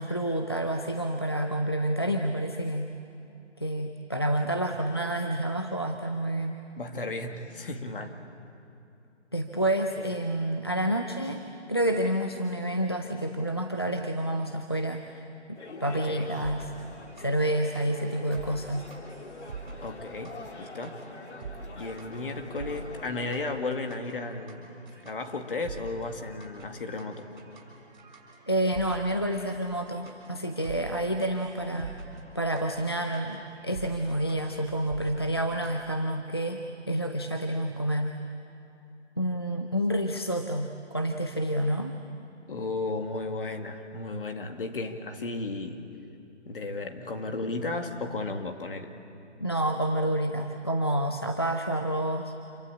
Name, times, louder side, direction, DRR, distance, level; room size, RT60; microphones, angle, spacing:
voice 1, 0.0-2.9 3.6-6.5 9.3-11.4 11.7-16.7 17.2-18.9 28.5-31.9 32.3-38.2 39.2-42.0 49.4-52.3, right 1 dB, 20° left, 4 dB, 0.5 m, -29 dB
voice 2, 6.8-8.2 10.0-10.1 16.1-16.3 19.8-21.0 21.8-27.3 42.5-45.9 46.5-48.9, left 3 dB, 50° left, 5 dB, 2.3 m, -34 dB
sound 1, 15.6-23.4, left 3 dB, 65° left, 2.8 m, -45 dB
sound 2, 16.2-35.9, right 4 dB, 40° right, 6.6 m, -46 dB
27.5 x 24.0 x 8.7 m, 2.7 s
hypercardioid pair, 170°, 36 cm